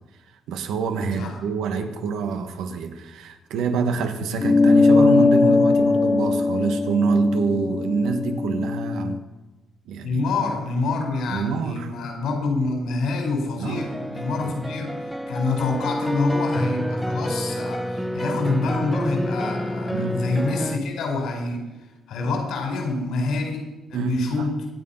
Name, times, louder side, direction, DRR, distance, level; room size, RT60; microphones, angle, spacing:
voice 1, 0.5-9.2 9.9-10.2 11.3-11.9 13.6-13.9 14.4-14.5 19.9-20.2 23.9-24.5, right 5 dB, 85° right, 7 dB, 1.8 m, -26 dB
sound 1, 4.4-9.2, left 3 dB, 30° left, 0.6 m, -19 dB
voice 2, 10.0-21.6 22.1-24.7, left 3 dB, 80° left, 3 dB, 4.6 m, -27 dB
sound 2, 13.7-20.8, equal, 5° right, 1.3 m, -28 dB
24.5 x 9.3 x 5.8 m, 1.2 s
cardioid pair, 90°, 0 cm